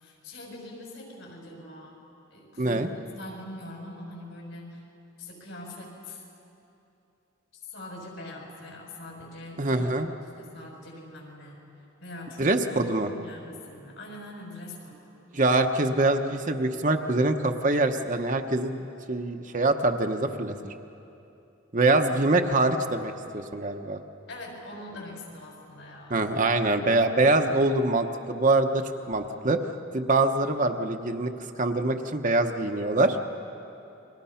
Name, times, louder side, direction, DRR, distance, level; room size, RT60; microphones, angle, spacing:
voice 1, 0.0-2.0 2.3-4.8 5.2-6.2 7.7-9.9 10.4-11.6 12.0-15.0 24.3-26.3, left 1 dB, 70° left, -1 dB, 6.8 m, -43 dB
voice 2, 2.6-2.9 9.6-10.1 12.4-13.1 15.3-20.7 21.7-24.0 26.1-29.6 29.9-31.3 31.6-33.2, right 2 dB, 40° right, 5 dB, 1.0 m, -24 dB
29.5 x 23.5 x 5.8 m, 2.9 s
head